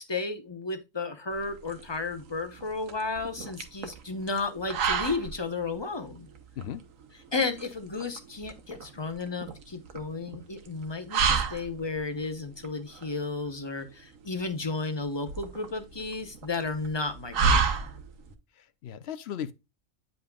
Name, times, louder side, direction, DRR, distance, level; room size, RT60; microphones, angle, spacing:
voice 1, 0.0-6.3 7.3-17.8, left 3 dB, 25° left, 0.8 m, -33 dB
sound 1, 1.3-18.3, right 5 dB, 80° right, 1.3 m, -32 dB
voice 2, 18.6-19.5, left 9 dB, 65° left, 0.8 m, -37 dB
9.2 x 5.3 x 2.3 m
omnidirectional pair, 1.4 m